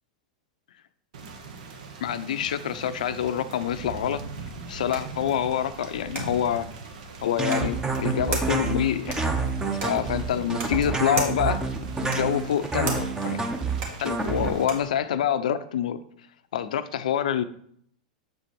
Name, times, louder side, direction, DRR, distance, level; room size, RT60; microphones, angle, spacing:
Thunder / Rain, 1.1-14.6, right 4 dB, 75° right, 1.1 m, -41 dB
voice 1, 2.0-4.2 4.7-6.7 7.2-9.2 9.8-11.6 12.0-13.4 14.0-16.0 16.5-17.4, left 9 dB, 80° left, 12 dB, 0.5 m, -26 dB
sound 1, 4.2-15.0, right 3 dB, 50° right, 2.3 m, -39 dB
sound 2, 7.4-14.5, right 4 dB, 15° right, 0.9 m, -28 dB
7.6 x 4.5 x 4.2 m, 0.65 s
hypercardioid pair, 115°, 4 cm